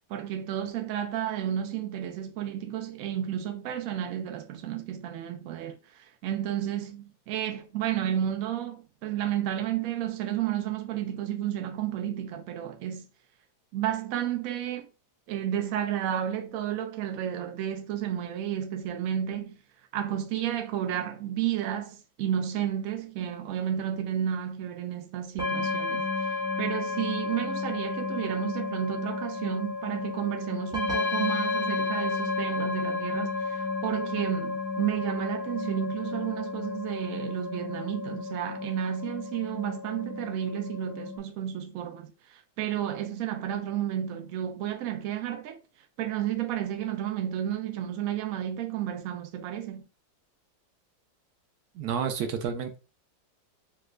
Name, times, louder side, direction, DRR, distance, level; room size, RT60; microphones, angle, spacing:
voice 1, 0.1-5.8 6.2-13.1 13.7-14.9 15.3-19.6 19.9-26.1 26.6-45.6 46.0-49.8, right 10 dB, 90° right, 0.7 m, -32 dB
sound 1, 25.4-41.2, left 3 dB, 5° right, 0.8 m, -32 dB
voice 2, 51.7-52.8, right 7 dB, 65° right, 1.0 m, -30 dB
3.2 x 2.4 x 3.1 m
omnidirectional pair, 2.1 m